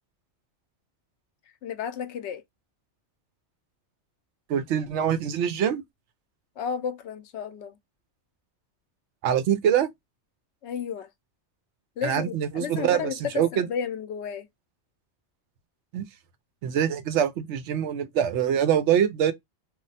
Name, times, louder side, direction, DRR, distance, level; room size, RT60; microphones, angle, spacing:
voice 1, 1.6-2.4 6.6-7.8 10.6-11.1 12.0-14.5, left 7 dB, 75° left, 0.8 m, -32 dB
voice 2, 4.5-5.8 9.2-9.9 12.0-13.7 15.9-16.0 16.6-19.3, right 9 dB, 80° right, 0.9 m, -24 dB
2.4 x 2.1 x 3.9 m
omnidirectional pair, 1.2 m